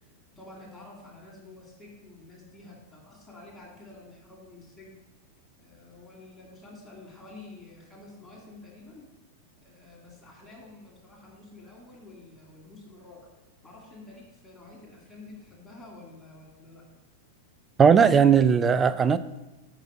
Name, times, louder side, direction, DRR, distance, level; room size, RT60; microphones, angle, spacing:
voice 1, 0.3-4.9 5.6-9.0 9.6-13.3 13.6-16.8, left 2 dB, 15° left, 2.4 m, -49 dB
voice 2, 17.8-19.2, right 7 dB, 25° right, 0.3 m, -18 dB
6.5 x 5.5 x 3.8 m
hypercardioid pair, 100°, 0 cm